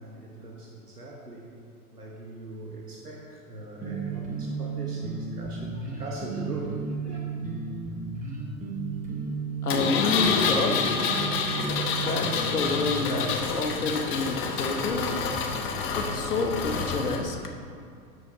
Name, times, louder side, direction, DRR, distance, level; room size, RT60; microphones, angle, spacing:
voice 1, 0.0-1.7 1.9-7.2, right 2 dB, 85° right, -2 dB, 1.3 m, -41 dB
sound 1, 3.8-13.4, right 4 dB, 15° right, 1.1 m, -34 dB
voice 2, 9.6-11.0 12.0-15.2 15.9-17.4, left 3 dB, 80° left, 3 dB, 1.1 m, -29 dB
Engine, 9.7-17.2, left 5 dB, 25° left, 0.9 m, -28 dB
11.5 x 5.1 x 4.0 m, 2.4 s
figure-of-eight pair, 95°, 45 cm